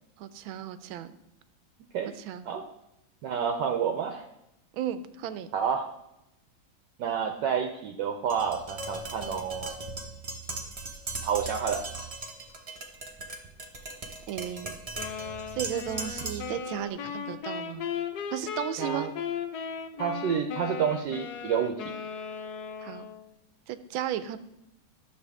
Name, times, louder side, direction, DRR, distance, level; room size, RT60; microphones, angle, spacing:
voice 1, 0.2-1.2 2.2-2.5 4.7-5.5 14.3-14.8 15.5-17.9 18.3-19.1 22.8-23.1 23.7-24.4, right 10 dB, 90° right, 13 dB, 1.4 m, -34 dB
voice 2, 3.2-4.3 5.5-5.9 7.0-9.8 10.5-10.6 11.2-11.8 18.8-19.1 20.0-21.8, right 7 dB, 70° right, 5 dB, 1.2 m, -29 dB
Tap, 8.3-16.6, right 2 dB, 35° right, 0.6 m, -38 dB
sound 1, 15.0-23.3, left 7 dB, 65° left, 1.0 m, -37 dB
11.5 x 7.0 x 3.5 m, 0.85 s
omnidirectional pair, 2.2 m